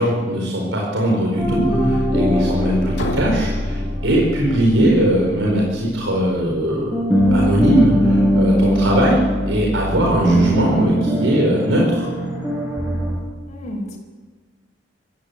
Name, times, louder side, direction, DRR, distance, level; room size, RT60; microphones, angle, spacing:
voice 1, 0.0-12.1, right 1 dB, 85° right, -2 dB, 4.6 m, -20 dB
sound 1, 1.4-6.6 6.9-13.2, equal, 10° right, 6.8 m, -21 dB
sound 2, 2.9-4.8, left 1 dB, 70° left, 2.4 m, -30 dB
voice 2, 13.5-14.0, equal, 35° left, -3 dB, 4.6 m, -31 dB
24.0 x 15.0 x 8.3 m, 1.4 s
head